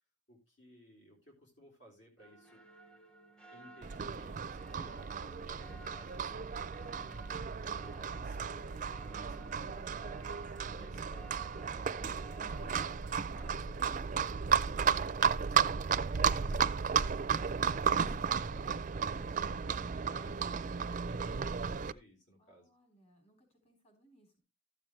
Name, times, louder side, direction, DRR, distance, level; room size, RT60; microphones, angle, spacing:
voice 1, 0.3-2.6 3.5-6.4 7.6-12.3 13.2-22.7, equal, 65° left, 0 dB, 3.5 m, -59 dB
sound 1, 2.2-13.5, right 2 dB, 5° left, 0.7 m, -56 dB
Livestock farm animals working animals, 3.8-21.9, right 6 dB, 40° right, 0.4 m, -34 dB
voice 2, 22.4-24.4, right 1 dB, 35° left, 2 dB, 3.8 m, -67 dB
13.0 x 7.5 x 3.2 m, 0.26 s
head